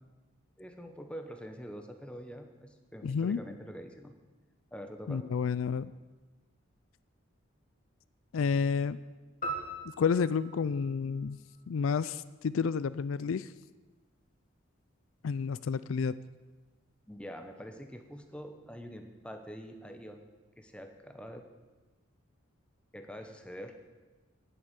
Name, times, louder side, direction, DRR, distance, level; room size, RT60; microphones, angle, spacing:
voice 1, 0.6-4.1 4.7-5.3 17.1-20.2 20.6-21.5 22.9-23.7, equal, 5° left, 5 dB, 0.9 m, -45 dB
voice 2, 3.0-3.4 5.1-5.9 8.3-9.0 10.0-11.4 11.7-13.5 15.2-16.1, left 6 dB, 75° left, 16 dB, 0.4 m, -30 dB
sound 1, 9.4-11.9, right 2 dB, 40° left, 2.0 m, -41 dB
10.0 x 8.9 x 8.1 m, 1.2 s
head